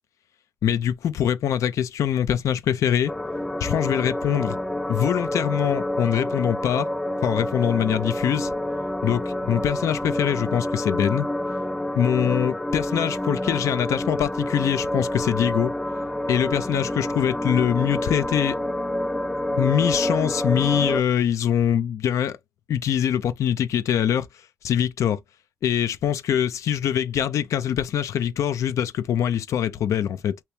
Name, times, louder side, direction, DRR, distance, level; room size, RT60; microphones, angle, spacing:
voice 1, 0.6-3.1 3.6-4.6 4.9-6.9 7.2-8.5 9.0-11.3 12.0-15.7 16.3-18.6 19.5-22.4 22.7-24.3 24.6-25.2 25.6-30.4, left 9 dB, 75° left, 0.5 m, -23 dB
sound 1, 3.1-21.0, left 1 dB, 10° left, 0.4 m, -28 dB
2.9 x 2.9 x 3.3 m
cardioid pair, 70°, 5 cm